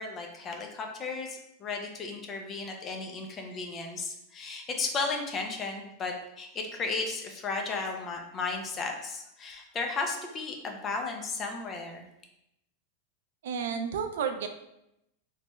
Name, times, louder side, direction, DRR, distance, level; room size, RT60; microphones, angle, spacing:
voice 1, 0.0-12.0, left 4 dB, 25° left, 2 dB, 0.4 m, -34 dB
voice 2, 13.4-14.5, right 7 dB, 80° right, 7 dB, 0.3 m, -31 dB
3.1 x 2.2 x 3.0 m, 0.83 s
supercardioid pair, 155°, 0 cm